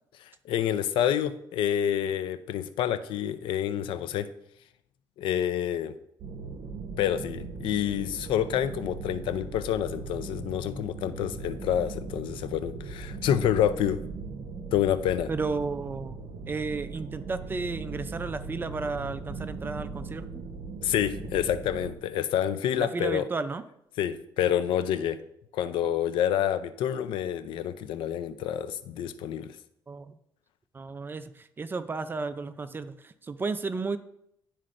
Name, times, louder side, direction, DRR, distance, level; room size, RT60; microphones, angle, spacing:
voice 1, 0.5-4.3 5.2-5.9 7.0-14.0 14.7-15.3 20.8-23.3 24.0-25.2 25.5-29.5, left 10 dB, 85° left, 12 dB, 0.5 m, -28 dB
sound 1, 6.2-22.0, right 4 dB, 65° right, 0.8 m, -39 dB
voice 2, 15.3-16.2 16.5-20.4 22.8-23.6 29.9-30.1 30.7-34.0, right 4 dB, 25° right, 11 dB, 0.4 m, -33 dB
11.0 x 4.3 x 2.5 m, 0.76 s
cardioid pair, 115°, 8 cm